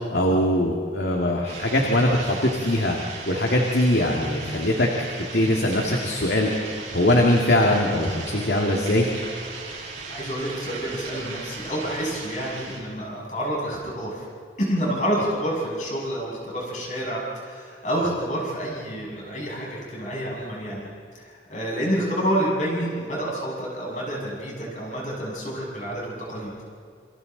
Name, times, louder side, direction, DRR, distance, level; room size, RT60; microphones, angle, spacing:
voice 1, 0.1-3.0 3.3-4.9 5.3-6.5 6.9-9.1, left 1 dB, 75° left, 0 dB, 2.1 m, -21 dB
sound 1, 1.5-12.8, right 4 dB, 85° right, 6.5 m, -37 dB
voice 2, 10.1-14.3 14.6-20.9 21.2-26.5, equal, 45° left, -4 dB, 6.7 m, -28 dB
28.0 x 27.0 x 4.0 m, 2.2 s
head